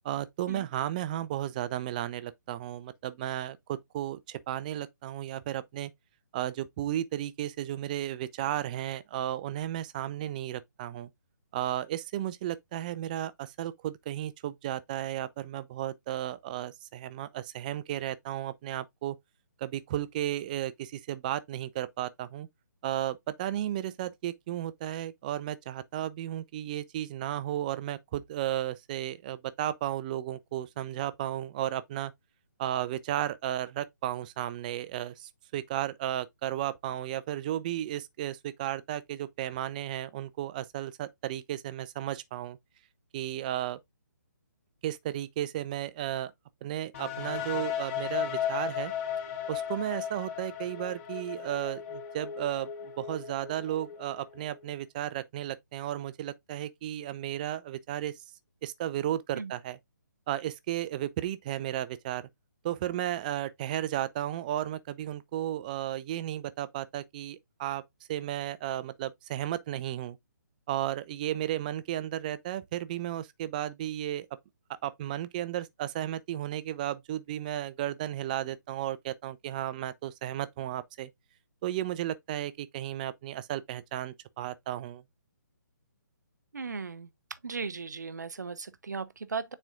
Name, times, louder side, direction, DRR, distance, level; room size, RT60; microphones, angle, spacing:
voice 1, 0.0-5.9 6.3-11.1 11.5-19.2 19.6-22.5 22.8-32.1 32.6-42.6 43.1-43.8 44.8-46.3 46.6-48.9 49.5-58.1 58.6-59.8 60.3-62.2 62.6-67.8 68.1-70.2 70.7-74.3 74.8-81.1 81.6-85.0, right 12 dB, 25° right, 0.5 m, -34 dB
sound 1, 46.9-54.7, left 9 dB, 45° left, 2.8 m, -36 dB
voice 2, 86.5-87.1 87.4-89.5, right 5 dB, 65° right, 0.6 m, -37 dB
8.8 x 4.3 x 2.4 m
figure-of-eight pair, 135°, 10 cm